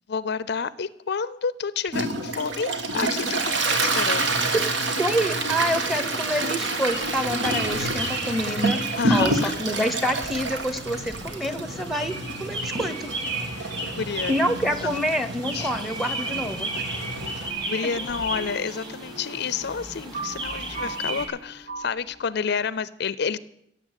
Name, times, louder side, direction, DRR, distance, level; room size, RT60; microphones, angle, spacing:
voice 1, 0.1-4.4 9.0-9.5 13.6-14.4 14.8-15.0 15.5-15.7 17.3-23.4, left 6 dB, 65° left, 18 dB, 0.5 m, -30 dB
Toilet flush, 1.9-17.5, right 2 dB, 70° right, 1.8 m, -28 dB
voice 2, 5.0-13.1 14.3-16.7, equal, ahead, 11 dB, 1.0 m, -27 dB
sound 1, 6.8-21.2, right 2 dB, 25° right, 2.9 m, -35 dB
sound 2, 17.3-22.3, right 3 dB, 55° right, 1.6 m, -39 dB
16.0 x 7.8 x 8.2 m, 0.74 s
head